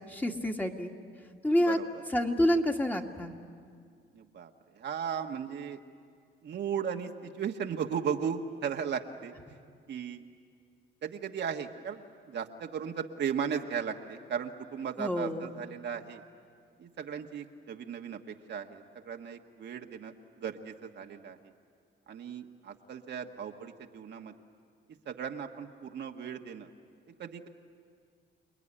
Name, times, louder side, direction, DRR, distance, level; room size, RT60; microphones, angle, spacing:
voice 1, 0.1-0.9 1.4-1.8 2.1-3.3 15.0-15.5, equal, 10° left, 2 dB, 2.1 m, -28 dB
voice 2, 4.1-5.8 6.4-9.3 9.9-10.2 11.0-12.0 12.3-16.2 16.8-21.4 22.1-24.3 25.0-26.7 27.2-27.5, right 7 dB, 60° right, 3 dB, 1.5 m, -36 dB
29.0 x 20.5 x 10.0 m, 2.1 s
cardioid pair, 90°, 20 cm